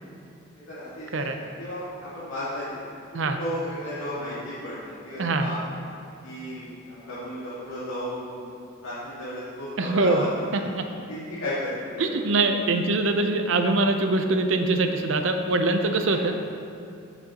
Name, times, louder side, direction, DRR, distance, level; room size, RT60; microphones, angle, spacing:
voice 1, 0.7-2.6 3.3-5.6 6.2-8.4 8.8-10.7 11.1-12.2 16.1-16.2, left 1 dB, 80° left, -10 dB, 2.0 m, -34 dB
voice 2, 5.2-5.5 9.8-10.8 12.0-16.3, right 2 dB, 65° right, 6 dB, 0.6 m, -23 dB
14.5 x 6.2 x 2.9 m, 2.8 s
head